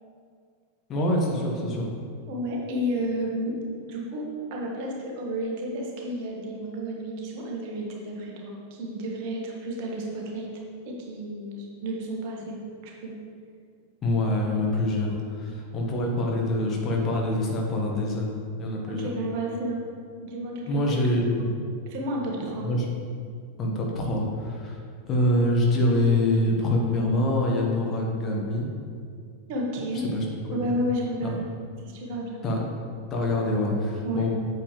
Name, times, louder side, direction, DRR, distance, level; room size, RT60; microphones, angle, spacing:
voice 1, 0.9-1.9 14.0-18.3 18.6-19.1 20.7-21.5 22.6-22.9 23.6-24.8 25.1-28.7 30.1-30.7 31.2-31.4 32.4-32.6 33.1-34.3, left 1 dB, 30° left, -1 dB, 1.5 m, -25 dB
voice 2, 2.3-3.5 3.9-10.5 10.9-12.6 12.8-13.1 15.5-15.6 19.0-19.8 20.2-20.9 21.4-21.5 21.9-22.7 29.5-30.1 30.5-31.4 31.8-32.4 34.0-34.3, equal, 45° right, -2 dB, 1.7 m, -31 dB
8.6 x 7.6 x 3.4 m, 2.2 s
figure-of-eight pair, 90°, 0 cm